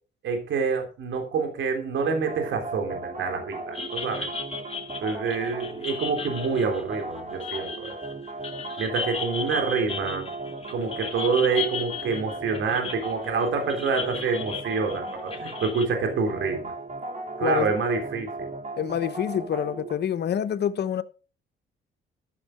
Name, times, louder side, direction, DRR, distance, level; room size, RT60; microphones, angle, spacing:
voice 1, 0.2-4.3 5.0-8.0 8.8-10.3 10.7-16.7 17.4-18.5, right 5 dB, 70° right, 3.3 m, -27 dB
sound 1, 2.0-19.9, right 2 dB, 35° right, 3.6 m, -37 dB
sound 2, 3.7-15.9, left 5 dB, 30° left, 1.8 m, -36 dB
voice 2, 17.4-17.8 18.8-21.0, left 9 dB, 55° left, 1.0 m, -27 dB
13.0 x 6.5 x 5.1 m
cardioid pair, 90°, 20 cm